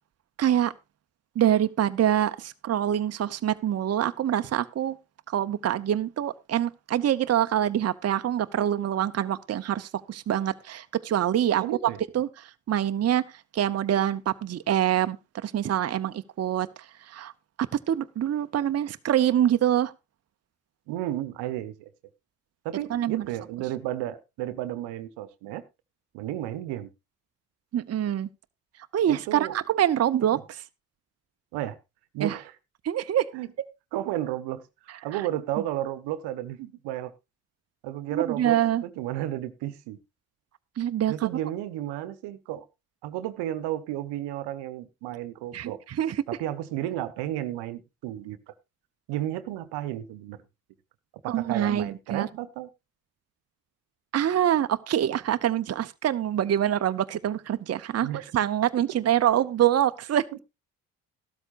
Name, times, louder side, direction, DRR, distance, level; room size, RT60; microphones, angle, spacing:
voice 1, 0.4-0.7 1.4-5.0 5.3-11.6 12.1-13.2 13.5-15.2 15.4-16.7 17.0-17.3 17.6-19.9 22.9-23.3 27.7-28.3 28.9-30.6 32.2-32.4 32.8-33.3 35.1-35.3 38.1-38.8 40.8-41.3 45.5-46.2 51.3-52.3 54.1-60.2, right 11 dB, 35° right, 0.8 m, -25 dB
voice 2, 11.6-12.0 20.9-21.9 22.6-25.6 26.1-26.9 29.1-29.5 30.3-30.4 31.5-31.8 32.1-32.5 33.3-33.5 33.9-34.6 35.0-37.1 37.8-40.0 41.1-42.6 43.0-45.8 46.3-48.5 49.1-50.4 51.2-52.7 58.0-58.2, right 13 dB, 75° right, 1.0 m, -33 dB
14.0 x 12.5 x 2.5 m
hypercardioid pair, 55°, 41 cm